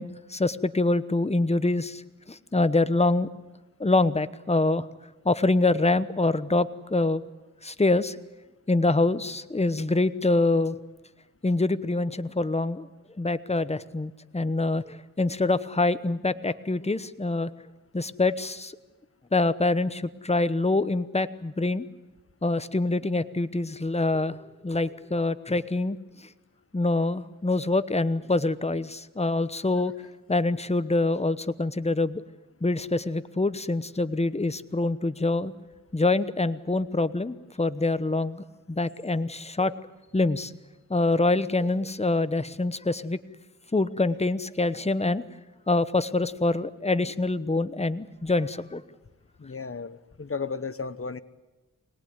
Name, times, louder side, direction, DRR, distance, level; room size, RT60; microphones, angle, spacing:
voice 1, 0.0-2.0 2.3-3.3 3.8-4.8 5.2-7.2 7.6-8.2 8.7-10.8 11.4-12.9 13.2-17.5 17.9-18.7 19.3-21.9 22.4-24.4 24.6-26.0 26.7-29.9 30.3-32.2 32.6-35.5 35.9-39.7 40.1-40.5 40.9-43.2 43.7-45.2 45.7-48.8, left 2 dB, 20° left, 14 dB, 1.0 m, -25 dB
voice 2, 49.4-51.2, left 5 dB, 45° left, 13 dB, 1.2 m, -34 dB
25.5 x 19.0 x 9.6 m, 1.1 s
cardioid pair, 45°, 32 cm